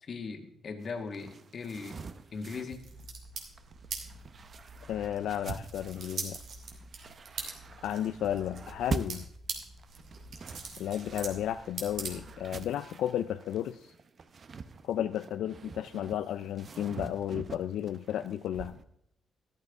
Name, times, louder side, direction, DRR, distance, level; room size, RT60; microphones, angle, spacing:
voice 1, 0.0-2.0 2.3-2.8, left 4 dB, 45° left, 6 dB, 1.5 m, -39 dB
sound 1, 0.8-18.8, right 4 dB, 40° right, 0.7 m, -44 dB
sound 2, 2.7-12.6, right 4 dB, 65° right, 2.6 m, -43 dB
voice 2, 4.9-6.4 7.8-9.2 10.8-13.9 14.8-18.8, left 11 dB, 80° left, 11 dB, 0.3 m, -33 dB
13.5 x 12.0 x 3.5 m, 0.76 s
cardioid pair, 115°, 0 cm